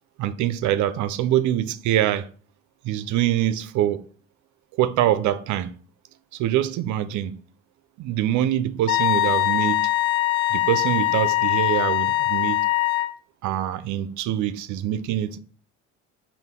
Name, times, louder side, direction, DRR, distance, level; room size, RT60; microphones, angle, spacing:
voice 1, 0.2-2.3 2.8-4.0 4.7-5.7 6.3-7.4 8.0-9.9 10.5-12.7 13.4-15.4, right 12 dB, 60° right, 0.5 m, -24 dB
Wind instrument woodwind instrument, 8.9-13.1, left 17 dB, 65° left, 0.5 m, -22 dB
5.6 x 2.2 x 3.5 m
hypercardioid pair, 60°, 32 cm